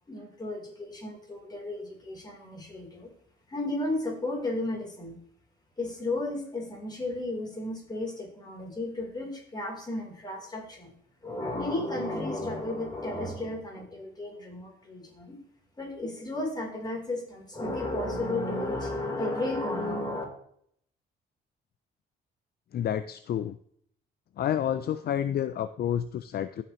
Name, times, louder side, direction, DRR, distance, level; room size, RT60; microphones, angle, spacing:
voice 1, 0.1-3.1 3.5-5.2 5.8-10.9 11.2-15.4 15.8-20.2, left 2 dB, 20° left, -2 dB, 3.9 m, -33 dB
voice 2, 22.7-23.6 24.4-26.6, left 10 dB, 50° left, 12 dB, 0.5 m, -29 dB
14.0 x 5.9 x 3.1 m, 0.66 s
cardioid pair, 90°, 20 cm